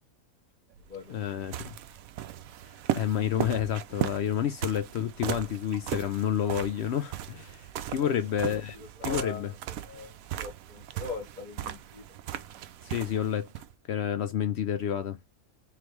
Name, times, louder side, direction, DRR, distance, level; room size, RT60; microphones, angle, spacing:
sound 1, 0.7-13.7, right 12 dB, 75° right, 1.0 m, -37 dB
voice 1, 1.1-1.7 3.0-8.8 9.0-9.5 12.8-13.5 13.9-15.2, left 9 dB, 70° left, 0.6 m, -29 dB
voice 2, 7.9-9.5 9.8-12.0, left 4 dB, 35° left, 1.0 m, -41 dB
3.8 x 3.2 x 3.2 m
omnidirectional pair, 1.6 m